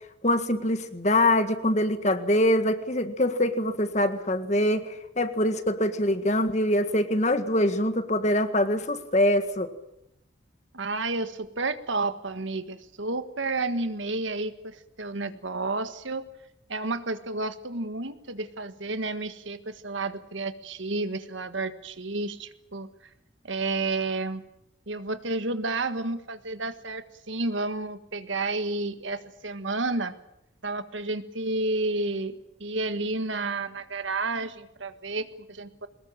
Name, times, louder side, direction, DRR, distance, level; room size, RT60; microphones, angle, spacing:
voice 1, 0.2-4.9 5.2-9.7, left 1 dB, 35° left, 10 dB, 1.8 m, -24 dB
voice 2, 10.7-16.3 16.7-22.9 23.4-24.4 24.9-30.1 30.6-32.3 32.6-35.9, right 3 dB, 75° right, 11 dB, 1.6 m, -31 dB
23.0 x 20.0 x 9.0 m, 0.81 s
head